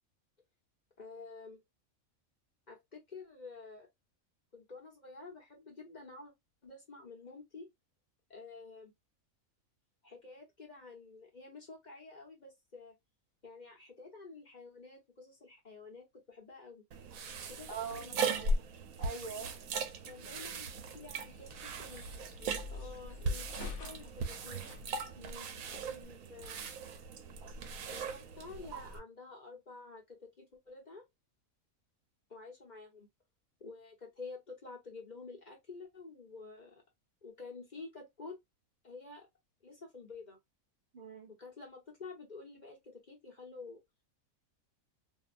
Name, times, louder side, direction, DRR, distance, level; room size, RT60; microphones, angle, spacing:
voice 1, 1.0-1.6 2.7-3.9 4.5-6.3 6.6-7.7 8.3-8.9 10.0-12.9 13.4-16.8 17.5-18.5 20.0-24.6 25.7-26.7 27.9-31.1 32.3-33.1 33.6-36.8 37.2-38.4 38.8-39.3 39.6-40.4 41.3-43.8, left 3 dB, 35° left, 1.0 m, -50 dB
sound 1, 16.9-29.0, right 3 dB, 80° right, 1.0 m, -39 dB
voice 2, 17.7-18.6 19.0-19.5 25.2-25.5 40.9-41.3, right 5 dB, 55° right, 0.6 m, -44 dB
sound 2, 21.1-26.0, left 4 dB, 65° left, 0.9 m, -48 dB
2.6 x 2.3 x 2.4 m
omnidirectional pair, 1.5 m